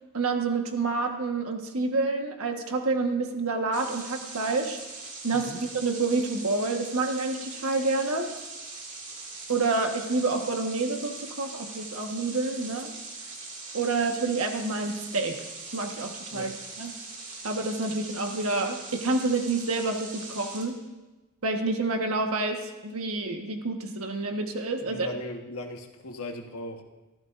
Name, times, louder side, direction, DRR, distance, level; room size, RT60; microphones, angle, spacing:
voice 1, 0.1-4.8 5.2-8.3 9.5-12.9 13.7-15.4 15.7-16.9 17.4-20.8 21.4-25.1, right 3 dB, 75° right, 3 dB, 1.4 m, -28 dB
sound 1, 3.7-20.6, right 3 dB, 35° right, 2.3 m, -41 dB
voice 2, 24.8-26.8, left 1 dB, 85° left, 3 dB, 1.4 m, -38 dB
24.5 x 14.5 x 2.6 m, 1.1 s
head